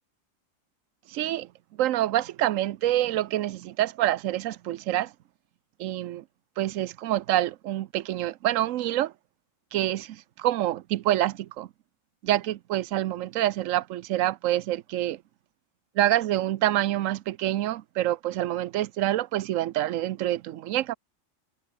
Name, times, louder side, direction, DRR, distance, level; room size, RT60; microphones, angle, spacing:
voice 1, 1.1-1.5 1.8-5.1 5.8-6.2 6.6-9.1 9.7-11.7 12.2-15.2 16.0-21.0, right 13 dB, 80° right, 1.0 m, -26 dB
omnidirectional pair, 1.4 m